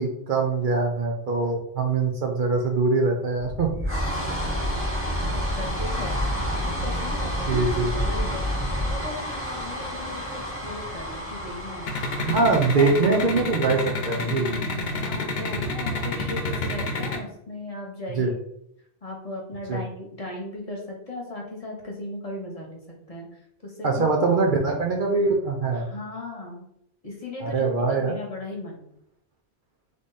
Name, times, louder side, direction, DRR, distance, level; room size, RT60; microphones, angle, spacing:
voice 1, 0.0-3.7 7.5-7.9 12.2-14.6 18.2-18.3 19.7-19.8 23.8-25.9 27.4-28.2, right 3 dB, 55° right, 1 dB, 0.7 m, -23 dB
sound 1, 3.3-13.9, equal, 15° right, 1.0 m, -29 dB
voice 2, 5.3-11.9 12.4-12.5 12.8-13.1 15.0-18.4 19.0-22.8 23.1-23.3 23.6-24.1 24.7-24.8 25.7-26.7 27.0-28.9, left 2 dB, 35° left, -1 dB, 1.1 m, -37 dB
sound 2, 11.9-17.2, left 3 dB, 70° left, 1.0 m, -28 dB
3.5 x 3.2 x 4.1 m, 0.74 s
omnidirectional pair, 1.1 m